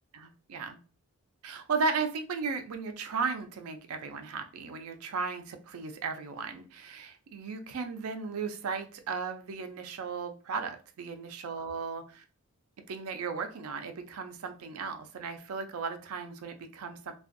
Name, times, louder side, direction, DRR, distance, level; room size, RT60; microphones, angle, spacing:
voice 1, 1.4-12.2 12.9-17.1, right 4 dB, 70° right, 7 dB, 0.4 m, -35 dB
2.5 x 2.3 x 2.5 m, 0.37 s
head